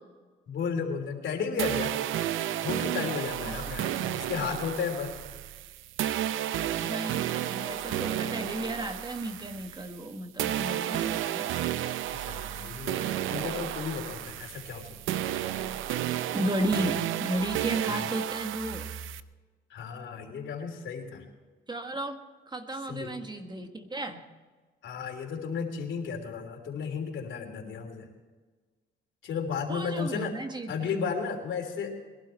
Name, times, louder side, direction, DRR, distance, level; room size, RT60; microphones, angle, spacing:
voice 1, 0.5-1.9 2.6-5.1 12.1-14.9 17.8-18.0 19.7-21.2 22.9-23.2 24.8-28.1 29.2-30.3 30.7-31.9, left 6 dB, 70° left, 3 dB, 3.2 m, -33 dB
sound 1, 1.6-10.1 10.4-19.2, right 12 dB, 80° right, 0.7 m, -32 dB
voice 2, 3.4-3.8 6.8-11.5 16.3-18.9 21.7-22.2 22.5-24.2 29.7-30.9, right 1 dB, 20° right, 6 dB, 1.6 m, -34 dB
21.5 x 12.0 x 4.4 m, 1.4 s
cardioid pair, 90°, 20 cm